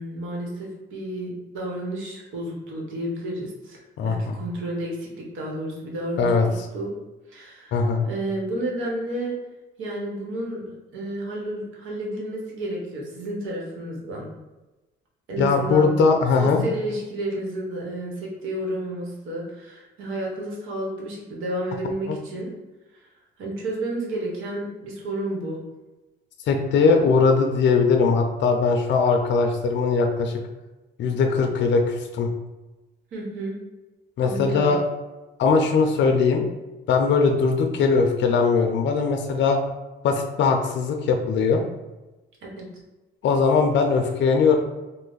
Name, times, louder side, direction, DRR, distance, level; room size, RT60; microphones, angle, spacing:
voice 1, 0.0-6.9 7.3-9.4 9.8-10.7 10.9-14.3 15.3-16.0 16.4-22.5 23.4-25.6 33.1-33.6 34.2-34.8 42.4-42.7, right 1 dB, 85° right, -2 dB, 1.0 m, -31 dB
voice 2, 4.0-4.4 6.2-6.5 7.7-8.1 15.4-16.6 22.1-22.2 26.5-30.3 31.0-32.3 34.2-34.8 35.4-36.4 36.9-39.6 40.0-41.6 43.2-44.6, left 4 dB, 65° left, 4 dB, 0.4 m, -20 dB
3.2 x 2.1 x 3.8 m, 1.1 s
cardioid pair, 90°, 20 cm